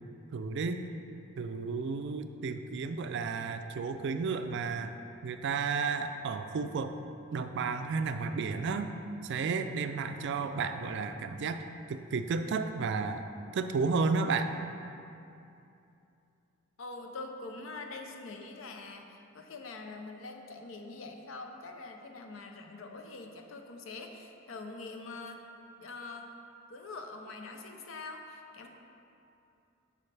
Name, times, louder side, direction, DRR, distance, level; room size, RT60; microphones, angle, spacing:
voice 1, 0.3-0.8 1.4-5.0 5.2-7.0 7.3-8.9 9.2-13.3 13.5-14.5, right 4 dB, 60° right, 8 dB, 0.4 m, -32 dB
voice 2, 16.8-25.4 25.8-26.3 26.7-28.7, left 3 dB, 70° left, 4 dB, 0.6 m, -44 dB
8.4 x 5.2 x 3.3 m, 2.7 s
head